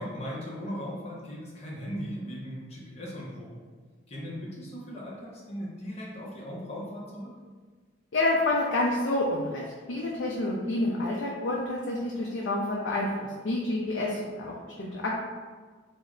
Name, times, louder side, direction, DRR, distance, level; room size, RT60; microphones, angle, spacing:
voice 1, 0.0-3.6 4.1-7.3, equal, 35° left, -5 dB, 0.7 m, -38 dB
voice 2, 8.1-15.1, left 2 dB, 80° left, -4 dB, 0.4 m, -28 dB
3.2 x 2.1 x 3.6 m, 1.5 s
head